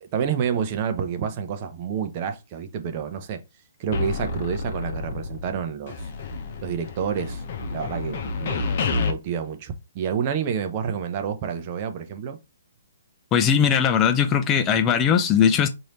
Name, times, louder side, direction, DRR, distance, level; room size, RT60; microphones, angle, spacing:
voice 1, 0.0-3.4 3.8-6.1 6.6-12.4, right 7 dB, 35° right, 0.6 m, -29 dB
sound 1, 3.9-5.6 5.9-9.1, left 4 dB, 45° left, 0.8 m, -29 dB
voice 2, 13.3-15.7, left 8 dB, 20° left, 0.5 m, -19 dB
3.2 x 2.7 x 4.2 m
hypercardioid pair, 145°, 0 cm